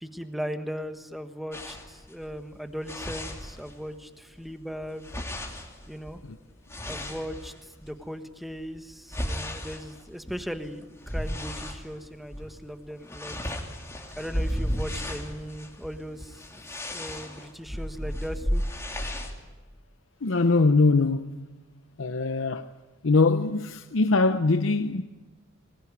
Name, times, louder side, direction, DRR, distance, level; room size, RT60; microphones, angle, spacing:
voice 1, 0.0-5.1 5.9-6.2 6.8-13.5 14.2-16.4 16.7-18.6, equal, ahead, 1.4 m, -38 dB
sound 1, 1.5-4.0 4.3-8.0 8.5-11.8 12.3-12.5 12.8-19.3, equal, 15° left, 3.1 m, -34 dB
voice 2, 20.2-21.4 22.0-22.7 23.0-25.0, left 3 dB, 80° left, 0.8 m, -22 dB
23.5 x 20.5 x 9.6 m
head